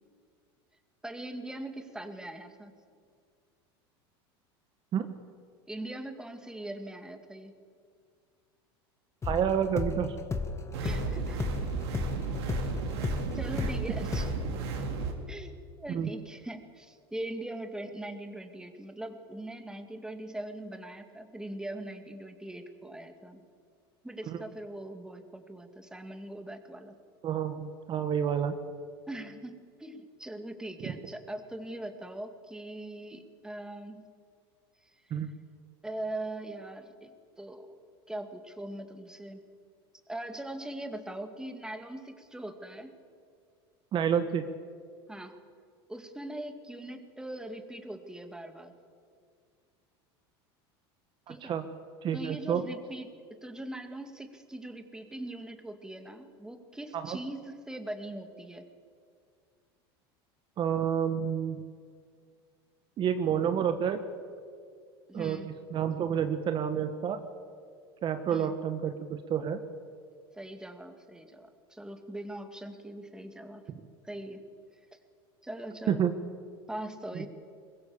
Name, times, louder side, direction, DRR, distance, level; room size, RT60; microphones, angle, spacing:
voice 1, 1.0-2.7 5.7-7.5 10.8-11.4 13.3-14.3 15.3-23.4 24.0-27.0 29.1-34.1 35.8-37.8 38.1-39.4 40.1-42.9 45.1-45.4 45.9-48.7 51.3-51.6 52.1-58.7 65.1-65.5 68.3-68.5 70.3-73.6 74.0-74.4 75.4-76.0 76.7-77.3, right 1 dB, 5° right, 7 dB, 2.2 m, -41 dB
sound 1, 9.2-13.8 14.1-14.4, left 4 dB, 20° left, 1.9 m, -33 dB
voice 2, 9.2-10.2 13.6-13.7 15.9-16.1 27.2-28.6 30.8-30.9 35.1-35.3 43.9-44.5 51.3-51.7 52.0-52.6 56.9-57.2 60.6-61.6 63.0-64.0 65.1-65.4 65.7-67.2 68.0-69.6 75.9-76.1 77.1-77.3, right 8 dB, 40° right, 8 dB, 1.4 m, -29 dB
sound 2, 10.7-15.1, right 4 dB, 80° right, 4.0 m, -34 dB
23.5 x 21.0 x 7.2 m, 2.2 s
supercardioid pair, 110°, 13 cm